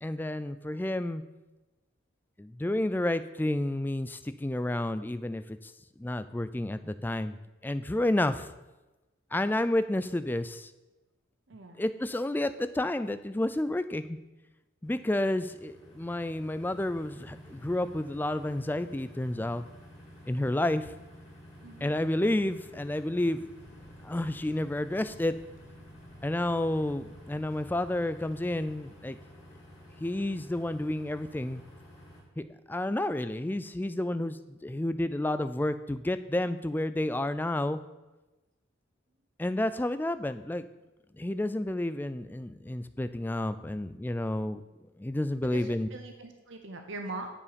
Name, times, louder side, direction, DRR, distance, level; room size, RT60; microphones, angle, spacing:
voice 1, 0.0-1.2 2.4-5.7 6.0-7.4 7.6-8.5 9.3-10.7 11.8-14.2 14.8-19.6 20.3-20.9 21.8-23.4 24.0-25.3 26.2-29.2 30.0-31.6 32.4-37.8 39.4-40.6 41.1-44.6 45.0-45.9, left 1 dB, 10° left, 12 dB, 0.3 m, -30 dB
voice 2, 11.5-11.8 21.6-22.0 26.0-26.1 45.4-47.3, right 2 dB, 70° right, 5 dB, 0.9 m, -42 dB
sound 1, 14.8-32.2, equal, 35° left, 3.2 m, -51 dB
sound 2, 23.6-28.9, left 1 dB, 65° left, 2.7 m, -58 dB
9.6 x 7.3 x 5.1 m, 1.1 s
head